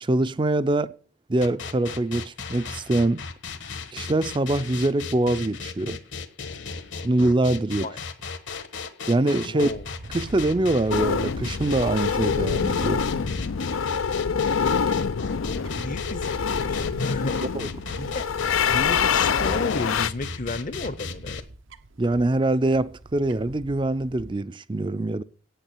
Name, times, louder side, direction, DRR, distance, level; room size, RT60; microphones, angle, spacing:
voice 1, 0.0-0.9 1.3-3.2 3.9-6.0 7.0-7.9 9.1-9.7 10.1-13.0 17.5-17.7 22.0-25.2, right 2 dB, 25° right, 0.5 m, -24 dB
sound 1, 1.4-21.4, left 5 dB, 65° left, 1.3 m, -36 dB
voice 2, 9.5-9.9 15.5-17.4 18.0-18.3 18.7-21.4, left 2 dB, 40° left, 0.7 m, -32 dB
Fowl / Bird, 9.7-24.3, right 2 dB, 80° right, 0.9 m, -41 dB
sound 2, 10.9-20.1, left 6 dB, 85° left, 0.5 m, -25 dB
9.2 x 8.7 x 8.3 m
head